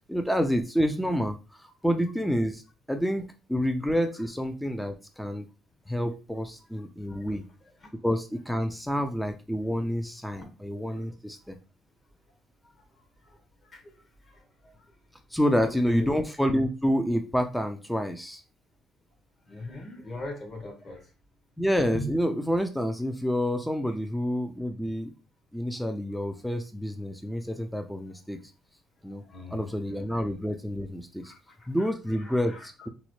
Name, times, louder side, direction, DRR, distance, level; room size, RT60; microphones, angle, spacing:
voice 1, 0.1-2.6 2.9-5.5 5.9-7.4 8.0-11.6 15.3-18.4 21.6-25.1 25.5-28.4 29.0-29.2 29.5-31.3 31.7-32.9, equal, 5° left, 6 dB, 0.3 m, -28 dB
voice 2, 7.6-7.9 10.3-10.5 10.9-11.1 12.3-12.4 12.6-14.9 15.6-16.2 19.4-21.1 23.9-24.0 29.0-29.7 30.1-30.2 31.2-32.9, left 3 dB, 35° left, 4 dB, 1.0 m, -43 dB
3.9 x 2.1 x 3.0 m, 0.31 s
cardioid pair, 110°, 0 cm